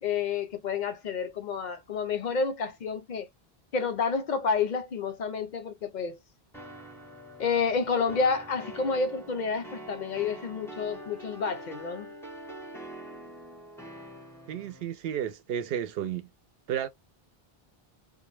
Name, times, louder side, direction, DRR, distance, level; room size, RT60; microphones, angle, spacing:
voice 1, 0.0-3.3 3.7-6.2 7.4-12.1, left 5 dB, 55° left, 0.6 m, -29 dB
sound 1, 6.5-14.8, right 1 dB, 5° left, 0.5 m, -45 dB
voice 2, 14.5-16.3 16.7-16.9, right 9 dB, 75° right, 0.8 m, -32 dB
2.2 x 2.0 x 3.0 m
omnidirectional pair, 1.0 m